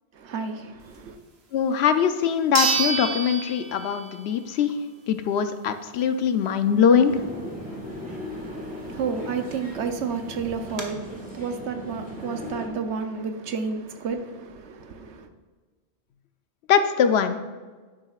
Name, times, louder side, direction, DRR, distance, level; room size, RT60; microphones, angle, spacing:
voice 1, 0.2-1.2 8.3-15.3, right 5 dB, 90° right, 1.1 m, -31 dB
voice 2, 1.5-4.8 5.1-7.2 16.7-17.6, left 7 dB, 75° left, 0.8 m, -22 dB
sound 1, 1.7-1.8 2.5-4.3 4.7-4.8 9.4-9.5 9.7-9.8 10.4-10.8, right 4 dB, 65° right, 1.4 m, -27 dB
sound 2, 7.1-12.7, equal, 5° right, 2.0 m, -38 dB
10.5 x 7.6 x 2.4 m
omnidirectional pair, 1.1 m